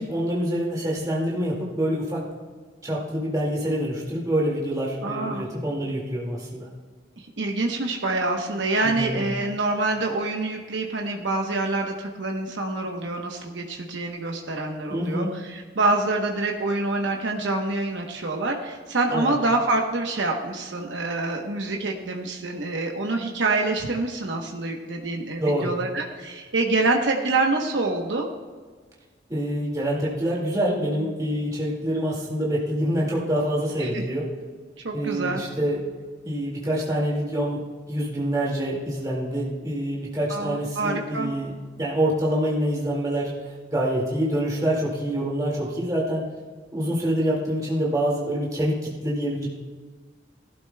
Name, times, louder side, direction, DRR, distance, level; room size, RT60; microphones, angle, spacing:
voice 1, 0.0-2.2 2.8-6.7 8.8-9.2 14.9-15.3 19.1-19.3 25.4-25.7 29.3-34.3 34.9-35.8 36.2-41.5 41.8-43.3 43.7-46.3 46.7-49.5, right 1 dB, 20° right, -5 dB, 2.1 m, -26 dB
voice 2, 5.0-5.5 7.4-28.3 33.8-34.0 34.8-35.4 40.3-41.3, right 2 dB, 85° right, 2 dB, 1.0 m, -26 dB
17.5 x 12.0 x 2.3 m, 1.5 s
head